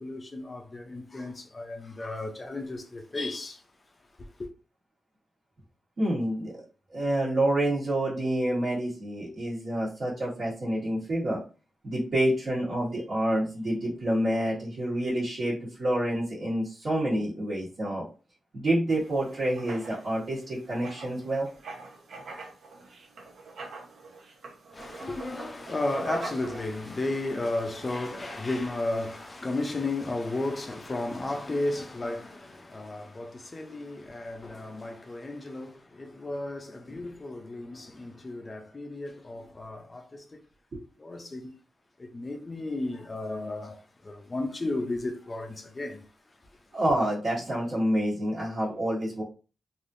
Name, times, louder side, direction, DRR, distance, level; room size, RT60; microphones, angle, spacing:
voice 1, 0.0-3.6 24.7-40.4 41.0-41.5 42.0-46.1, left 2 dB, 25° left, 0.6 m, -34 dB
voice 2, 6.0-6.6 6.9-11.4 11.8-18.1 18.5-21.5 40.7-40.8 46.7-49.2, right 1 dB, 50° right, 1.3 m, -28 dB
Writing, 18.9-29.3, right 3 dB, 70° right, 0.8 m, -44 dB
3.3 x 2.7 x 2.6 m
wide cardioid pair, 130°, 0 cm